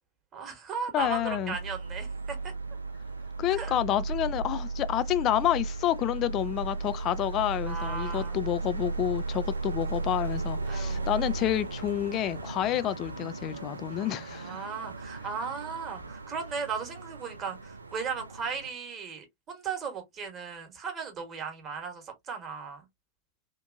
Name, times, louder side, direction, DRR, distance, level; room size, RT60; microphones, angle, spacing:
voice 1, 0.3-2.5 3.5-3.7 7.6-8.4 10.6-11.2 12.6-12.7 14.0-22.8, right 6 dB, 30° right, 1.1 m, -37 dB
voice 2, 0.9-1.6 3.4-14.6, left 12 dB, 35° left, 0.3 m, -29 dB
sound 1, 1.0-18.7, right 3 dB, 80° right, 0.4 m, -36 dB
2.9 x 2.5 x 2.5 m
figure-of-eight pair, 90°, 0 cm